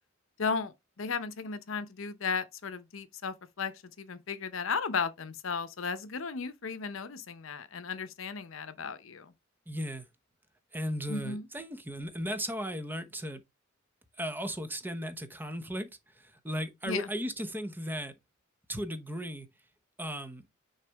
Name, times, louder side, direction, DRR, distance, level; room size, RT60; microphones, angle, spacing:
voice 1, 0.4-9.3 11.1-11.5 16.9-17.1, left 5 dB, 70° left, 0.7 m, -35 dB
voice 2, 9.7-10.1 10.7-13.4 14.2-18.1 18.7-19.5 20.0-20.4, equal, 10° right, 0.8 m, -36 dB
6.6 x 4.2 x 3.4 m
head